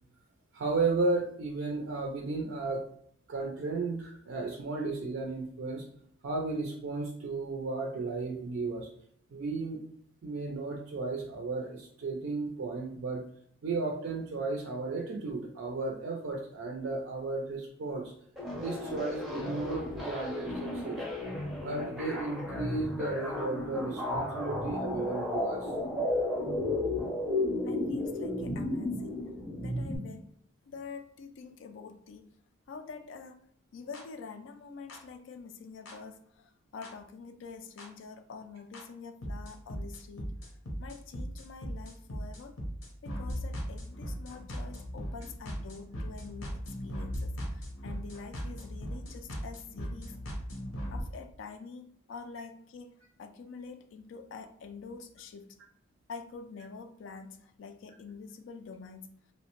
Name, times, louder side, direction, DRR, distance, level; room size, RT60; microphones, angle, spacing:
voice 1, 0.5-2.8 3.3-5.9 6.2-8.9 9.3-9.8 10.2-13.2 13.6-18.1 18.5-21.0 21.4-25.7, right 3 dB, 65° right, 1 dB, 0.4 m, -34 dB
sound 1, 18.4-30.0, left 2 dB, ahead, 0.5 m, -33 dB
voice 2, 27.7-29.3 29.6-30.3 30.7-32.3 32.7-33.4 33.7-40.3 40.8-42.6 43.0-50.2 50.9-55.6 56.1-59.1, left 5 dB, 65° left, 8 dB, 0.3 m, -46 dB
sound 2, 33.9-34.0 34.9-35.0 35.9-36.0 36.8-36.9 37.8-37.9 38.7-38.8 39.2-51.0, equal, 85° left, 0.7 m, -38 dB
2.8 x 2.1 x 2.9 m, 0.64 s
head